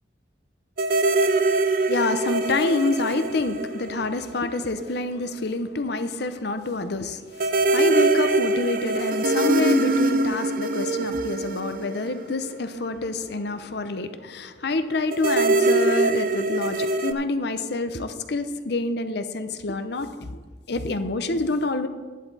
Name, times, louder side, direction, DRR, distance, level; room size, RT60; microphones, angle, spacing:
sound 1, 0.8-4.5 4.8-4.9 7.4-12.8 15.1-17.1, right 2 dB, 50° right, 0.6 m, -23 dB
voice 1, 1.9-7.2 7.7-20.4 20.7-21.9, left 2 dB, 65° left, 9 dB, 0.7 m, -27 dB
11.0 x 11.0 x 4.1 m, 1.4 s
head